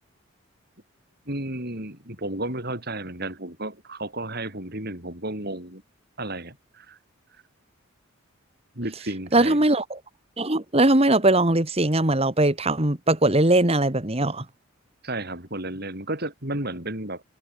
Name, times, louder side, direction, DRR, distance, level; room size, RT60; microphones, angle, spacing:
voice 1, 1.3-5.8 6.2-7.0 8.8-9.6 15.0-17.2, right 1 dB, 45° right, 6.1 m, -32 dB
voice 2, 9.3-10.0 10.4-14.5, right 2 dB, 30° right, 2.0 m, -20 dB
head